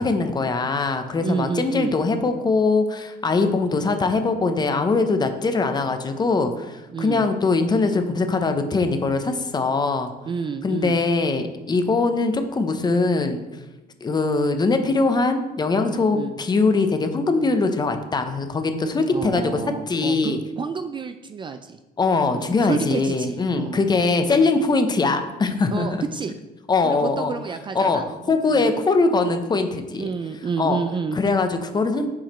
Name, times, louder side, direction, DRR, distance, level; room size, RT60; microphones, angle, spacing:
voice 1, 0.0-10.1 10.6-13.5 14.0-20.4 22.0-26.0 26.7-27.3 27.7-28.0 28.3-30.1 30.6-30.8 31.2-32.1, left 3 dB, 25° left, 7 dB, 0.7 m, -22 dB
voice 2, 1.2-1.9 6.9-7.2 10.3-11.0 16.1-16.4 19.1-21.8 22.3-23.8 25.7-26.4 26.8-28.7 30.0-31.2, right 5 dB, 30° right, 9 dB, 0.3 m, -30 dB
6.0 x 4.8 x 4.2 m, 1.1 s
cardioid pair, 110°, 17 cm